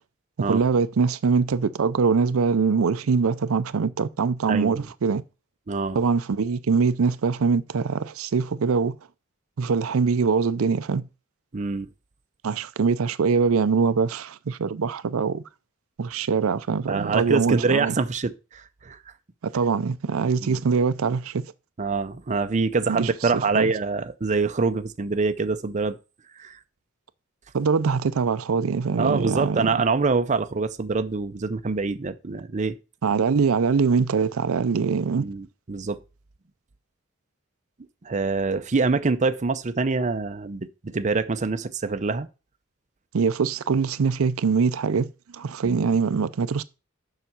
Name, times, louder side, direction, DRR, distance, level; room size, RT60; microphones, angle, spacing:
voice 1, 0.4-5.2 5.9-9.0 9.6-11.1 12.4-15.4 16.0-18.0 19.4-21.5 22.9-23.7 27.5-29.7 33.0-35.3 43.1-46.6, right 5 dB, 85° right, 0.5 m, -23 dB
voice 2, 4.5-4.9 5.7-6.0 11.5-11.9 16.9-19.0 20.4-20.6 21.8-26.0 26.4-26.5 29.0-32.8 35.2-36.0 38.0-42.3, right 4 dB, 35° right, 0.6 m, -25 dB
6.9 x 5.8 x 5.9 m
head